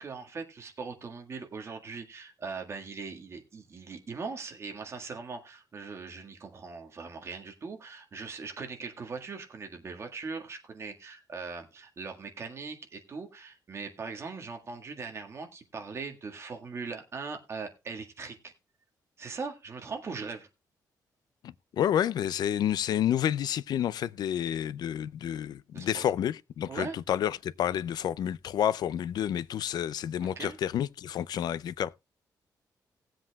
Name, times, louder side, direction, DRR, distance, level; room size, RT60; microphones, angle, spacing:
voice 1, 0.0-18.5 19.2-20.5 25.7-26.1 26.7-27.0 30.2-30.6, right 4 dB, 40° right, 1.7 m, -40 dB
voice 2, 21.4-31.9, left 10 dB, 70° left, 0.4 m, -29 dB
19.0 x 7.7 x 2.3 m
wide cardioid pair, 160°, 7 cm